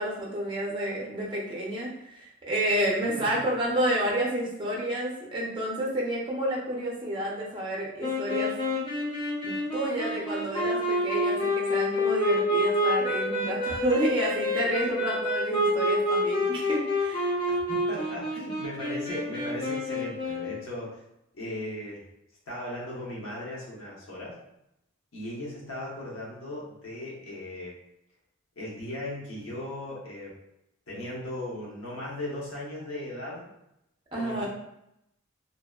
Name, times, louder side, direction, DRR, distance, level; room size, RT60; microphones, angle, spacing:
voice 1, 0.0-8.9 9.4-17.3 34.1-34.5, right 1 dB, 25° right, -4 dB, 0.5 m, -30 dB
sound 1, 8.0-20.6, left 1 dB, 25° left, 0.6 m, -28 dB
voice 2, 17.9-21.0 21.3-22.0 22.5-24.4 25.1-27.8 28.6-30.3 30.9-33.5 34.1-34.5, left 1 dB, 70° left, -5 dB, 0.9 m, -37 dB
2.7 x 2.1 x 2.3 m, 0.83 s
head